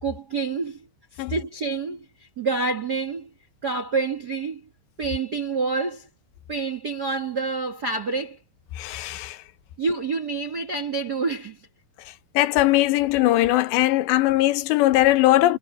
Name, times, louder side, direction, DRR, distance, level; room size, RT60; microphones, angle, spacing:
voice 1, 0.0-0.9 1.1-3.3 3.6-4.7 5.0-6.1 6.5-8.4 9.8-11.6, right 4 dB, 55° right, 1.1 m, -28 dB
voice 2, 8.8-9.4 12.4-15.6, left 15 dB, 85° left, 3.2 m, -20 dB
omnidirectional pair, 4.9 m